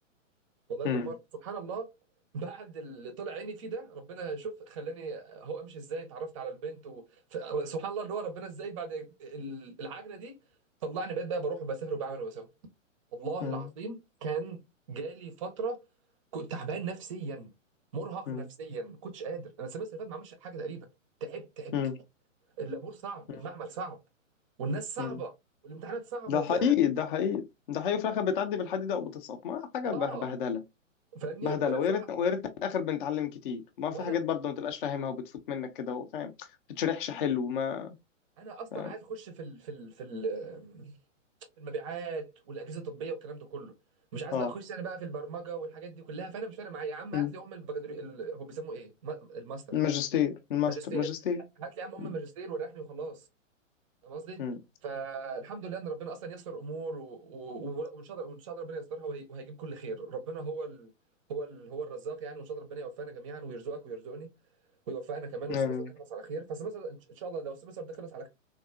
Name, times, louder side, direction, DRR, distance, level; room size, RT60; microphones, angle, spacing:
voice 1, 0.7-1.2 1.4-1.9 2.3-7.0 7.3-10.3 10.8-12.5 13.1-14.6 14.9-15.8 16.3-17.5 17.9-20.9 21.2-21.7 22.6-24.0 24.6-25.3 25.6-26.7 29.9-30.3 31.1-32.0 33.9-34.2 38.4-41.0 41.6-43.7 44.1-49.6 50.6-51.1 51.6-53.3 54.0-54.4 54.8-60.9 61.3-64.3 64.9-68.3, right 4 dB, 25° right, 0.5 m, -38 dB
voice 2, 26.3-30.6 31.4-36.5 36.8-37.9 38.7-38.9 44.3-44.5 47.1-47.3 49.7-51.4 52.0-52.1 54.4-54.6 65.5-65.9, left 8 dB, 45° left, 0.5 m, -30 dB
3.6 x 2.3 x 2.3 m
figure-of-eight pair, 120°, 39 cm